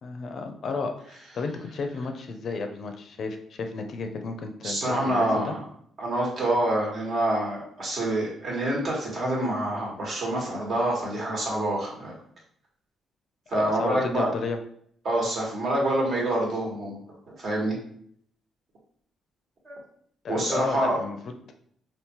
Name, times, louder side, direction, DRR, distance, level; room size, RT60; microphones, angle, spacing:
voice 1, 0.0-5.5 13.5-14.6 20.2-21.2, left 4 dB, 55° left, 5 dB, 0.5 m, -33 dB
voice 2, 4.6-5.6 6.0-12.2 13.5-14.3 15.0-17.0 17.4-17.8 19.6-19.8 20.3-21.0, right 1 dB, 55° right, -3 dB, 1.3 m, -26 dB
3.6 x 2.4 x 2.8 m, 0.64 s
cardioid pair, 90°, 0 cm